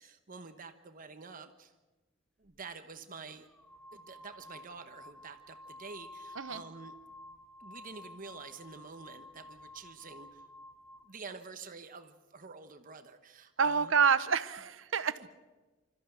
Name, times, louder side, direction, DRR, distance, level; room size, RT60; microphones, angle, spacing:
voice 1, 0.0-1.7 2.4-3.5 3.9-6.9 7.6-10.4 11.0-13.9 15.2-15.3, right 4 dB, 45° right, 8 dB, 1.0 m, -48 dB
sound 1, 2.4-2.6 3.4-11.1, left 1 dB, 5° left, 1.0 m, -52 dB
voice 2, 13.6-15.3, right 6 dB, 80° right, 14 dB, 0.9 m, -28 dB
26.0 x 13.5 x 8.0 m, 1.2 s
head